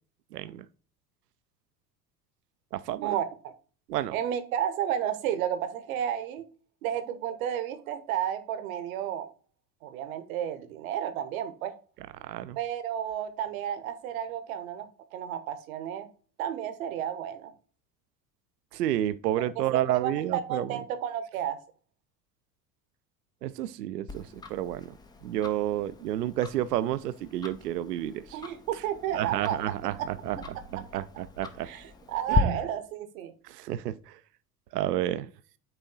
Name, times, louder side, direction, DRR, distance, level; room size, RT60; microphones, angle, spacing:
voice 1, 0.3-0.7 2.7-3.1 3.9-4.2 12.2-12.6 18.7-20.8 23.4-24.9 25.2-28.4 28.7-28.8 29.1-31.7 32.3-32.6 33.4-34.2 34.7-35.3, right 12 dB, 70° right, 0.5 m, -30 dB
voice 2, 3.0-3.5 4.1-6.4 6.8-9.3 9.8-11.7 12.6-16.1 16.4-17.5 19.4-19.5 19.7-21.6 28.3-29.7 31.6-33.3, right 9 dB, 55° right, 1.0 m, -32 dB
Tick-tock, 24.1-32.4, left 5 dB, 10° left, 0.4 m, -37 dB
8.8 x 3.5 x 3.9 m
figure-of-eight pair, 70°, 49 cm